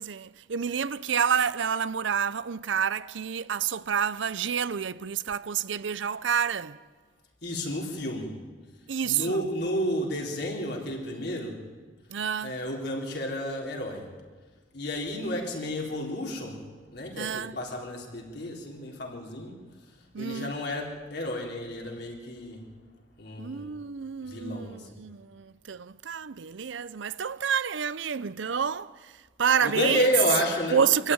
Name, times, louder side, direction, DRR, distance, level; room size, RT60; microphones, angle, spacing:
voice 1, 0.0-6.8 8.9-9.4 12.1-12.6 17.2-17.6 20.1-20.5 23.4-29.1 29.4-30.1 30.7-31.1, right 7 dB, 75° right, 0.6 m, -28 dB
voice 2, 7.4-8.3 9.0-11.6 12.4-14.1 14.7-16.6 16.9-19.6 20.2-22.7 23.2-23.7 24.2-24.9 29.6-30.8, left 1 dB, 60° left, 4.0 m, -31 dB
24.0 x 14.5 x 9.5 m
head